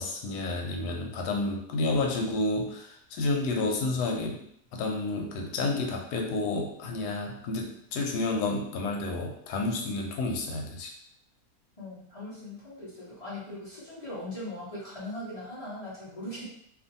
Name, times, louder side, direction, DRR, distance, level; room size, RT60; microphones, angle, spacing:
voice 1, 0.0-4.5 4.7-10.9, left 2 dB, 90° left, 2 dB, 1.2 m, -30 dB
voice 2, 11.8-16.5, left 1 dB, 35° left, -9 dB, 0.6 m, -40 dB
2.5 x 2.5 x 2.6 m, 0.69 s
omnidirectional pair, 1.7 m